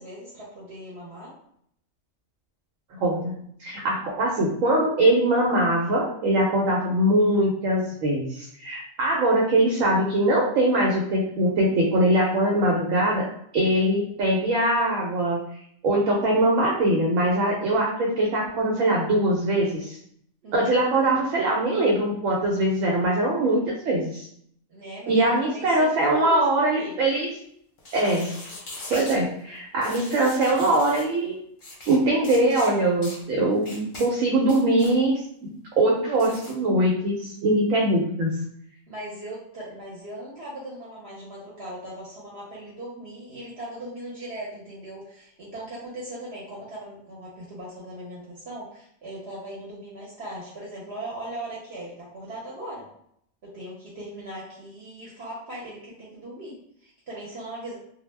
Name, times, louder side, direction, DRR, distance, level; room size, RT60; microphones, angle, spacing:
voice 1, 0.0-1.4 20.4-21.2 24.7-27.0 38.9-52.9 53.4-57.8, right 1 dB, 60° right, -6 dB, 0.8 m, -39 dB
voice 2, 2.9-13.3 13.5-15.4 15.8-20.0 20.5-24.3 25.1-27.3 27.9-28.3 28.9-31.4 31.9-35.1 35.4-35.5 35.8-38.3, right 1 dB, 90° right, -2 dB, 1.0 m, -22 dB
sound 1, 27.8-29.2 29.8-31.1 31.6-32.0 32.2-32.7 33.0-33.2 33.6-34.1 34.4-35.0 36.2-36.5, left 2 dB, 50° left, 0.7 m, -40 dB
2.2 x 2.0 x 3.1 m, 0.69 s
omnidirectional pair, 1.3 m